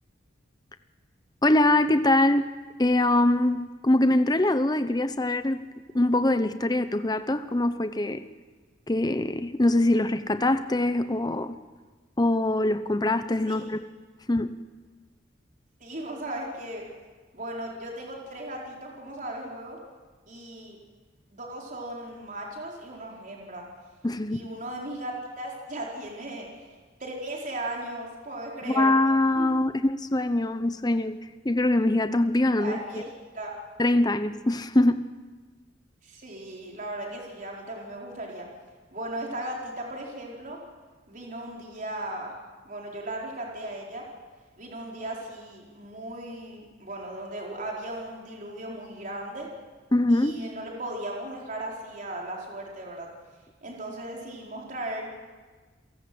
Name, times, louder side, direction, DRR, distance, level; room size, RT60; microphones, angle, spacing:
voice 1, 1.4-2.5 2.8-5.7 5.9-8.2 8.9-11.5 12.2-13.8 14.3-14.5 24.0-24.5 28.6-31.2 31.4-33.0 33.8-35.0 49.9-50.4, left 1 dB, 20° left, 10 dB, 0.8 m, -23 dB
voice 2, 15.8-16.8 17.3-19.8 20.3-20.8 21.3-23.6 24.3-26.7 27.0-28.9 29.4-29.6 32.6-33.1 33.3-33.6 36.0-38.5 38.9-40.6 41.1-42.3 42.6-44.1 44.6-49.5 50.1-53.1 53.6-55.1, right 1 dB, 45° right, -2 dB, 4.6 m, -37 dB
29.5 x 17.5 x 7.8 m, 1.4 s
head